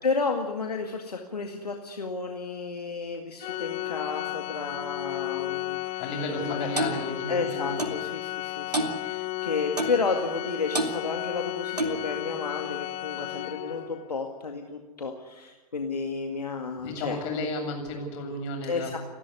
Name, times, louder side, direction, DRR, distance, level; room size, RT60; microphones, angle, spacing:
voice 1, 0.0-6.1 6.4-6.7 7.3-17.2 18.6-19.0, left 4 dB, 80° left, 3 dB, 2.0 m, -32 dB
Organ, 3.4-14.1, left 18 dB, 30° left, 0.9 m, -34 dB
voice 2, 6.0-7.8 16.8-19.0, left 2 dB, 50° left, 3 dB, 7.7 m, -33 dB
Clock, 6.8-7.0 7.8-8.0 8.7-9.0 9.8-10.0 10.7-11.0 11.8-12.0, right 2 dB, 85° right, 2.5 m, -28 dB
30.0 x 12.5 x 9.7 m, 1.2 s
figure-of-eight pair, 95°, 20 cm